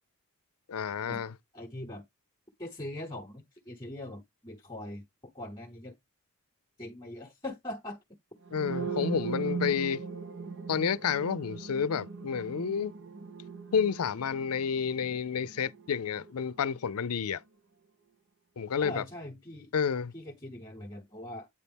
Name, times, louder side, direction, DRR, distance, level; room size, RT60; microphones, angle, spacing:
voice 1, 0.7-1.3 8.5-10.0 10.7-12.9 13.7-17.4 18.6-19.0 19.7-20.1, left 7 dB, 90° left, 0.5 m, -30 dB
voice 2, 1.5-2.0 2.6-5.1 5.3-5.9 6.8-8.0 18.8-19.7 20.1-21.5, left 1 dB, 20° left, 0.9 m, -41 dB
sound 1, 8.5-16.3, right 5 dB, 55° right, 0.7 m, -39 dB
8.6 x 4.2 x 3.5 m
head